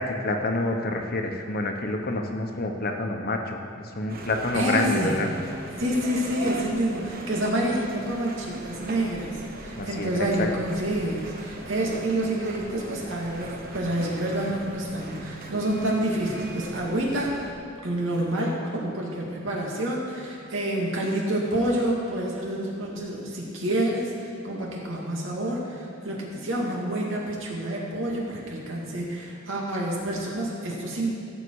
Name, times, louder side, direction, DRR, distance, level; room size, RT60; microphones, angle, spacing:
voice 1, 0.0-5.3 9.7-10.5, left 2 dB, 50° left, 3 dB, 1.2 m, -28 dB
sound 1, 4.1-17.5, right 2 dB, 50° right, 1.1 m, -40 dB
voice 2, 4.5-5.2 5.8-17.3 17.8-31.1, right 1 dB, 80° right, -3 dB, 2.4 m, -28 dB
16.5 x 7.4 x 4.8 m, 2.7 s
head